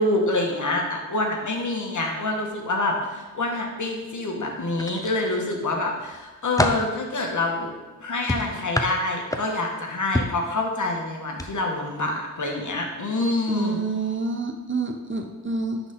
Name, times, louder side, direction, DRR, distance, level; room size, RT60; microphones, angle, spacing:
voice 1, 0.0-7.7 8.0-13.8, left 2 dB, 60° left, 1 dB, 1.4 m, -26 dB
sound 1, 4.7-5.5 6.0-6.9 8.3-9.7 10.1-10.4 11.3-11.5 11.9-12.0, left 1 dB, 10° left, 0.7 m, -27 dB
voice 2, 13.5-15.9, right 3 dB, 35° right, 5 dB, 0.9 m, -28 dB
10.0 x 4.1 x 3.8 m, 1.2 s
cardioid pair, 50°, 34 cm